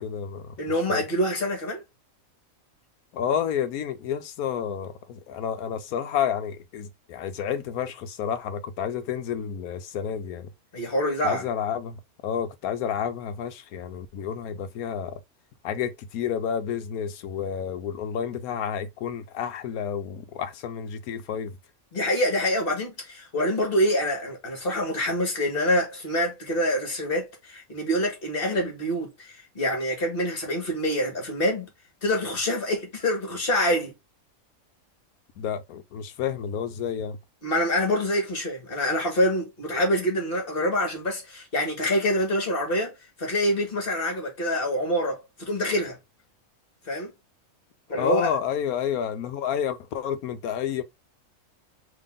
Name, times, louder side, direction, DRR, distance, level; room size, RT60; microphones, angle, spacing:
voice 1, 0.0-0.5 0.9-1.0 3.1-10.5 11.2-15.2 15.6-21.6 35.4-37.2 47.9-50.8, left 8 dB, 85° left, 1.2 m, -30 dB
voice 2, 0.6-1.8 10.7-11.5 21.9-31.7 32.0-33.9 37.4-46.0 46.9-47.1 47.9-48.3, equal, 40° left, 1.8 m, -26 dB
3.9 x 3.0 x 3.5 m
omnidirectional pair, 1.5 m